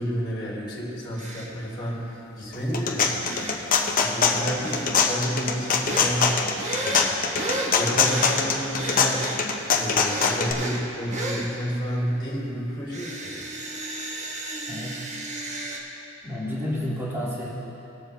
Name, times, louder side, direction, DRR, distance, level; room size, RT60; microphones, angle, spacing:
voice 1, 0.0-6.5 6.8-7.2 7.7-13.4, equal, 25° left, -9 dB, 2.4 m, -31 dB
sound 1, 1.2-1.5 3.2-3.6 4.6-4.9 5.9-6.1 6.6-8.4 8.8-9.4 10.0-10.8 11.1-11.5 12.9-15.8, right 2 dB, 35° right, 1.2 m, -33 dB
sound 2, 2.5-10.5, left 5 dB, 40° left, 0.8 m, -23 dB
voice 2, 14.7-15.0 16.2-17.5, left 1 dB, 10° right, -8 dB, 2.1 m, -30 dB
18.5 x 7.1 x 3.4 m, 2.9 s
head